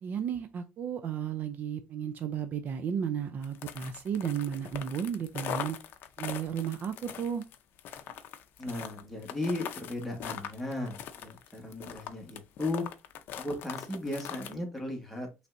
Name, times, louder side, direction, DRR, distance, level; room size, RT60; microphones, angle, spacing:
voice 1, 0.0-5.8 6.2-7.4, right 8 dB, 45° right, 0.4 m, -33 dB
sound 1, 3.4-14.5, left 9 dB, 60° left, 0.5 m, -41 dB
voice 2, 8.6-12.8 13.4-15.3, left 1 dB, ahead, 1.3 m, -36 dB
5.3 x 3.3 x 2.6 m
cardioid pair, 155°, 4 cm